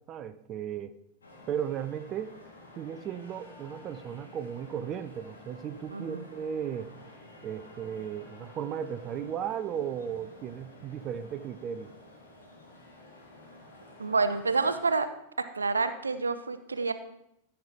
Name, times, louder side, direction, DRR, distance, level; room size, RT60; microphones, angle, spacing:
voice 1, 0.1-0.9 1.5-2.3 2.8-6.9 7.4-11.9, right 8 dB, 30° right, 11 dB, 0.6 m, -35 dB
sound 1, 1.2-14.8, left 2 dB, 70° left, 2.6 m, -51 dB
voice 2, 14.0-15.1 15.4-16.9, right 4 dB, 75° right, 11 dB, 0.7 m, -28 dB
15.0 x 5.9 x 5.0 m, 0.81 s
figure-of-eight pair, 90°, 0 cm